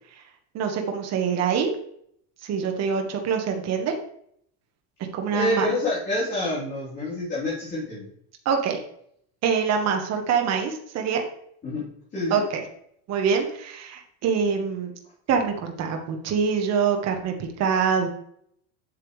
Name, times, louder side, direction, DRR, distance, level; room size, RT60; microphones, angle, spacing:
voice 1, 0.5-1.7 2.4-4.0 5.0-5.7 8.4-8.8 9.4-11.2 12.3-12.6 13.1-14.9 15.3-18.1, right 6 dB, 35° right, 4 dB, 1.1 m, -25 dB
voice 2, 5.3-8.0 11.6-11.9 12.1-12.4, left 1 dB, 25° left, -12 dB, 3.2 m, -27 dB
8.3 x 6.7 x 3.2 m, 0.69 s
cardioid pair, 170°, 44 cm